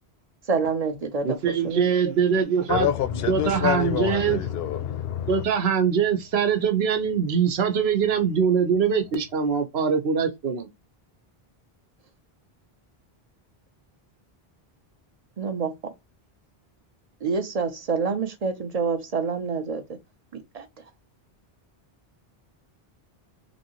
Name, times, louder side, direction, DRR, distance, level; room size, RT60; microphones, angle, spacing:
voice 1, 0.5-1.4 1.6-1.9 15.4-15.7 17.2-19.8 20.3-20.7, right 5 dB, 45° right, 0.6 m, -27 dB
voice 2, 1.2-2.9 3.3-4.4 5.3-10.7, right 6 dB, 80° right, 1.0 m, -23 dB
voice 3, 2.7-5.5, left 10 dB, 75° left, 0.8 m, -27 dB
3.0 x 2.7 x 2.8 m
omnidirectional pair, 1.0 m